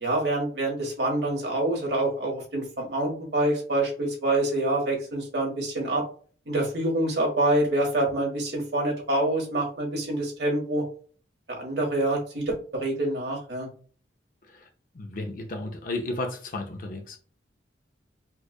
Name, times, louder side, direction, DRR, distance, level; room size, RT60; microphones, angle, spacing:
voice 1, 0.0-6.0 6.5-10.8 11.5-13.7, right 1 dB, 70° right, 0 dB, 1.5 m, -26 dB
voice 2, 14.9-17.2, left 2 dB, 50° left, 3 dB, 0.5 m, -33 dB
4.5 x 2.3 x 2.3 m, 0.40 s
head